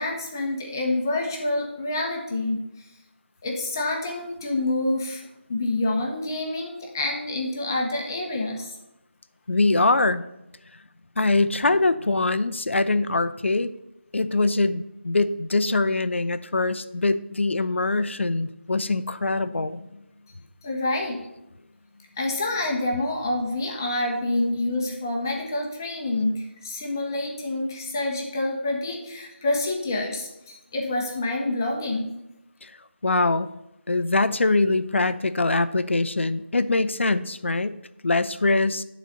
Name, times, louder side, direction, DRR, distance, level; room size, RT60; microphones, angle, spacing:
voice 1, 0.0-2.6 3.4-5.2 5.5-8.7 20.6-21.2 22.2-32.1, left 2 dB, 15° left, 0 dB, 0.8 m, -27 dB
voice 2, 9.5-10.2 11.2-13.7 14.1-20.0 32.6-32.7 33.0-33.5 33.9-37.7 38.0-38.8, left 3 dB, 70° left, 13 dB, 0.5 m, -23 dB
9.2 x 4.0 x 6.6 m, 0.89 s
figure-of-eight pair, 175°, 7 cm